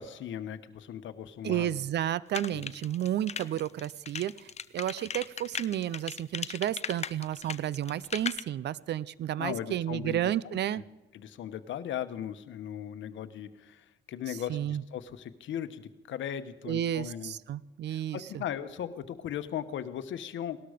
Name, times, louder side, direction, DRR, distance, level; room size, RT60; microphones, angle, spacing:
voice 1, 0.0-1.8 2.5-2.6 9.4-10.8 11.1-17.4 17.9-20.6, left 9 dB, 75° left, 11 dB, 1.1 m, -38 dB
voice 2, 1.4-10.8 14.3-14.8 16.7-18.4, right 11 dB, 60° right, 20 dB, 0.5 m, -32 dB
sound 1, 2.3-8.4, left 6 dB, 35° left, 0.6 m, -37 dB
18.5 x 12.5 x 5.1 m, 1.1 s
cardioid pair, 90°, 20 cm